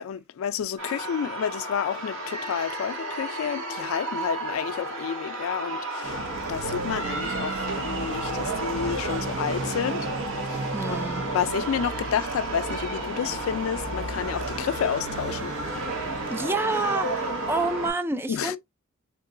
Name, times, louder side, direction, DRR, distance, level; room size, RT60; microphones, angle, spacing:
voice 1, 0.0-6.2 6.5-10.1 10.5-10.6 10.9-11.0 11.3-15.5 18.3-18.6, left 8 dB, 80° left, 0.3 m, -30 dB
sound 1, 0.8-17.9, right 1 dB, 80° right, 2.0 m, -34 dB
sound 2, 6.0-17.9, right 3 dB, 65° right, 0.6 m, -33 dB
voice 2, 10.7-11.3 16.3-18.6, right 2 dB, 10° right, 0.3 m, -28 dB
3.7 x 2.9 x 2.4 m
head